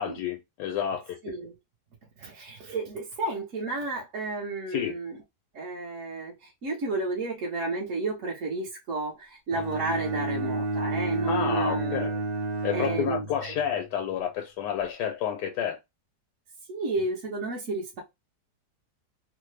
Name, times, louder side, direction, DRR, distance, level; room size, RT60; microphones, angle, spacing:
voice 1, 0.0-1.3 4.7-4.9 11.3-12.2 12.6-15.8, left 9 dB, 85° left, 1.2 m, -30 dB
voice 2, 1.2-1.5 2.2-5.2 5.5-12.1 12.7-13.5 16.7-18.0, right 2 dB, 55° right, 1.0 m, -32 dB
Bowed string instrument, 9.5-13.8, right 2 dB, 30° right, 0.5 m, -31 dB
3.1 x 2.1 x 3.2 m
omnidirectional pair, 1.8 m